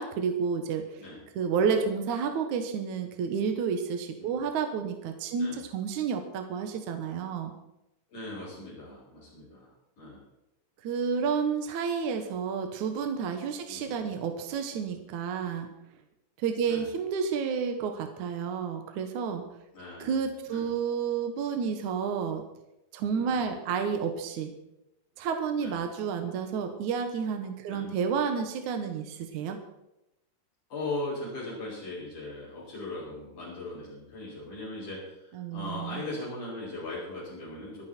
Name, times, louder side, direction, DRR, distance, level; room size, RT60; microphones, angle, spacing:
voice 1, 0.0-1.0 1.4-7.5 10.8-15.7 16.4-19.4 20.0-22.4 22.9-24.5 25.2-29.6 35.3-36.0, right 6 dB, 65° right, 6 dB, 2.5 m, -30 dB
voice 2, 8.1-10.2 13.7-13.9 16.6-16.9 19.7-20.7 23.1-23.5 25.6-25.8 27.7-27.9 30.7-37.9, left 2 dB, 65° left, -8 dB, 7.3 m, -39 dB
25.5 x 9.5 x 4.5 m, 0.89 s
omnidirectional pair, 3.9 m